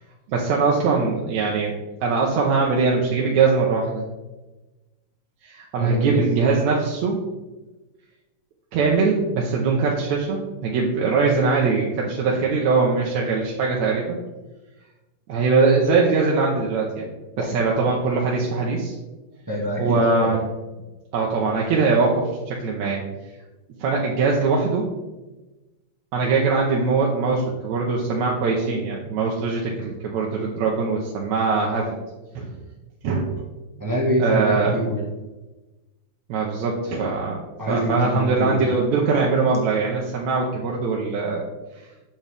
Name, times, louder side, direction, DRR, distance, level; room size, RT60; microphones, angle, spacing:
voice 1, 0.3-1.7 2.0-4.0 5.4-7.2 8.7-14.2 15.3-17.1 17.5-19.0 19.8-20.4 21.1-23.0 23.8-24.9 26.1-31.9 32.4-32.5 33.0-33.3 34.2-34.7 36.3-37.4 37.7-41.4, right 4 dB, 80° right, -2 dB, 2.2 m, -21 dB
voice 2, 5.8-6.2 17.4-17.5 19.5-20.3 33.8-35.0 37.6-38.6, equal, 25° right, -3 dB, 0.4 m, -25 dB
8.2 x 7.7 x 3.5 m, 1.1 s
omnidirectional pair, 3.3 m